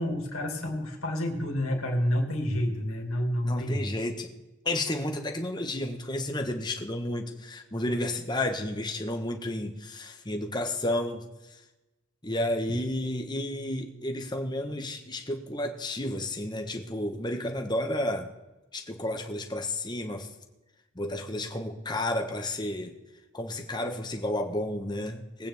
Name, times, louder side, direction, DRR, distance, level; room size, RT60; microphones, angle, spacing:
voice 1, 0.0-3.9 12.7-12.9, equal, 85° left, 1 dB, 2.5 m, -29 dB
voice 2, 3.4-4.3 4.6-11.6 12.2-18.3 18.7-20.3 20.9-22.9 23.3-25.5, left 1 dB, 20° left, 4 dB, 1.2 m, -32 dB
21.0 x 8.8 x 3.5 m, 1.0 s
head